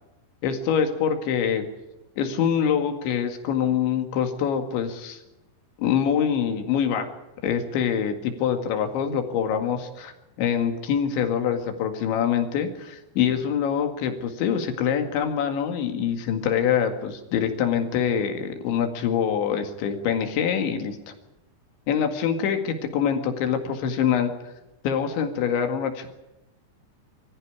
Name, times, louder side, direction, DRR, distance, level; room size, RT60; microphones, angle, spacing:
voice 1, 0.4-1.6 2.2-5.2 5.8-7.1 7.4-21.0 21.9-24.3 24.8-26.1, left 8 dB, 85° left, 6 dB, 4.4 m, -25 dB
23.5 x 15.0 x 9.5 m, 0.94 s
omnidirectional pair, 5.1 m